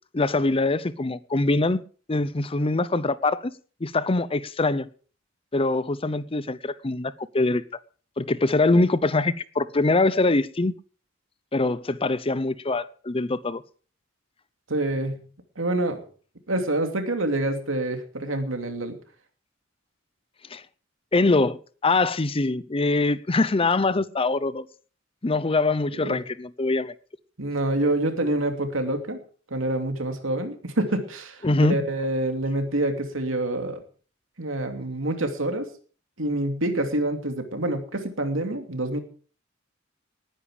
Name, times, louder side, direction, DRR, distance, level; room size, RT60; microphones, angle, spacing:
voice 1, 0.1-1.8 2.1-3.5 3.8-4.9 5.5-7.6 8.2-10.7 11.5-13.6 20.5-20.6 21.1-21.6 21.8-24.7 25.2-26.9 31.4-31.9, left 2 dB, 30° left, 0.7 m, -23 dB
voice 2, 14.7-15.2 15.6-16.0 16.5-19.0 26.0-26.2 27.4-29.2 29.5-31.4 31.7-33.8 34.4-35.7 36.2-39.0, right 1 dB, 85° right, 2.8 m, -26 dB
19.0 x 10.0 x 5.0 m
head